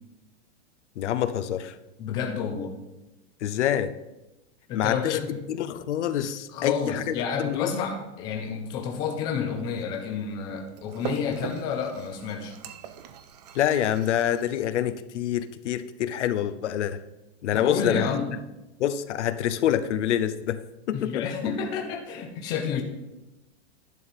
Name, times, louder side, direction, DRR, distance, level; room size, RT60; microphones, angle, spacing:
voice 1, 1.0-1.7 3.4-3.9 4.7-5.2 5.5-7.7 13.5-17.0 17.4-18.1 18.8-20.6 20.9-21.3, left 10 dB, 85° left, 12 dB, 0.8 m, -26 dB
voice 2, 2.0-2.8 4.7-5.3 6.5-12.5 17.5-18.3 20.9-22.8, left 6 dB, 10° left, 3 dB, 0.5 m, -30 dB
sound 1, 8.7-14.4, right 9 dB, 35° right, 0.6 m, -42 dB
11.0 x 4.2 x 7.2 m, 1.0 s
supercardioid pair, 170°, 34 cm